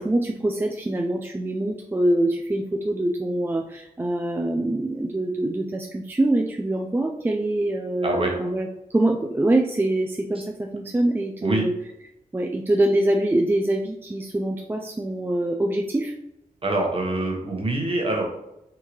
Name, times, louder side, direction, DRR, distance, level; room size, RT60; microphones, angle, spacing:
voice 1, 0.0-11.7 12.3-16.1, right 1 dB, 15° right, 2 dB, 0.3 m, -24 dB
voice 2, 8.0-8.3 11.4-11.6 16.6-18.3, right 2 dB, 40° right, 0 dB, 0.9 m, -24 dB
3.7 x 2.7 x 3.0 m, 0.86 s
wide cardioid pair, 75°, 15 cm